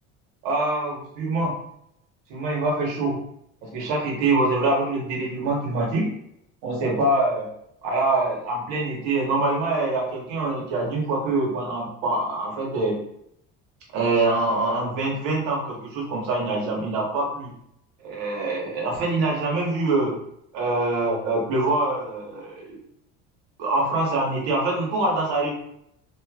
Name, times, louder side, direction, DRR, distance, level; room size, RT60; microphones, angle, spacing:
voice 1, 0.4-1.6 2.3-3.2 3.6-6.1 6.6-7.5 7.8-13.0 13.9-17.5 18.0-20.2 20.5-22.8 23.6-25.5, right 2 dB, 80° right, -1 dB, 1.2 m, -24 dB
3.1 x 2.6 x 2.4 m, 0.73 s
cardioid pair, 130°, 29 cm